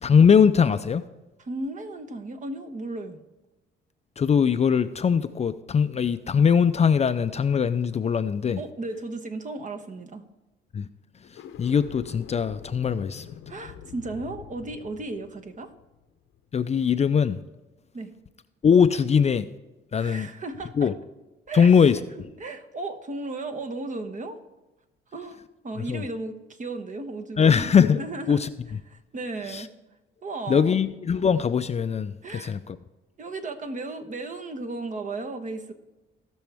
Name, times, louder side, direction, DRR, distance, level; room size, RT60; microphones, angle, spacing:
voice 1, 0.0-1.0 4.2-8.6 10.7-10.8 11.6-13.3 16.5-17.4 18.6-19.5 19.9-20.3 20.8-20.9 21.5-22.0 25.9-26.0 27.4-28.0 28.3-28.5 29.5-29.6 30.5-32.8, left 7 dB, 35° left, 0.4 m, -21 dB
voice 2, 1.4-3.2 8.6-10.2 13.5-15.7 17.9-18.1 19.9-20.9 21.5-21.8 22.4-24.4 25.1-27.7 28.0-28.4 28.9-29.7 30.2-30.8 32.2-32.6 33.2-35.7, right 2 dB, 40° right, 1.1 m, -35 dB
sound 1, 11.2-16.5, left 9 dB, 90° left, 0.8 m, -45 dB
17.5 x 6.2 x 3.4 m
cardioid pair, 90°, 20 cm